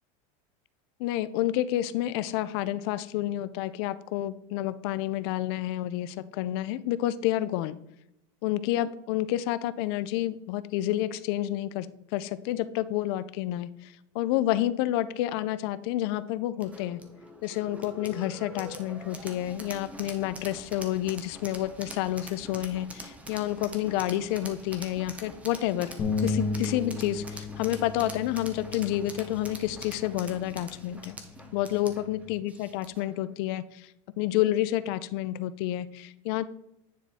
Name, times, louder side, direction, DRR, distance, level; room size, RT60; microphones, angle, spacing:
voice 1, 1.0-7.8 8.4-11.9 12.1-17.0 17.4-25.9 26.2-31.2 31.5-33.9 34.2-36.5, left 14 dB, 50° left, 15 dB, 0.4 m, -29 dB
sound 1, 16.6-33.1, right 1 dB, 10° right, 0.6 m, -44 dB
sound 2, 26.0-32.2, left 4 dB, 20° left, 0.8 m, -35 dB
9.7 x 4.2 x 3.5 m, 0.83 s
supercardioid pair, 165°, 16 cm